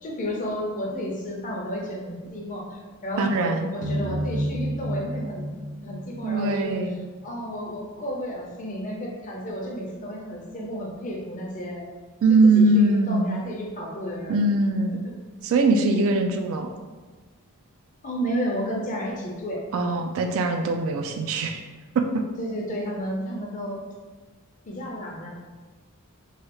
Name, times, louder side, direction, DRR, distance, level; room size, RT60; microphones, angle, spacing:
voice 1, 0.0-5.5 5.8-6.7 7.2-11.8 12.3-14.4 14.9-15.0 18.0-19.6 22.4-23.8 24.7-25.3, equal, 35° left, -2 dB, 0.6 m, -32 dB
voice 2, 3.2-3.7 6.2-7.0 12.2-13.4 14.3-15.0 15.4-16.7 19.7-21.6 22.0-22.2, right 2 dB, 65° right, 4 dB, 0.3 m, -21 dB
sound 1, 3.8-7.0, equal, 80° right, 0.7 m, -30 dB
3.1 x 2.3 x 3.0 m, 1.4 s
head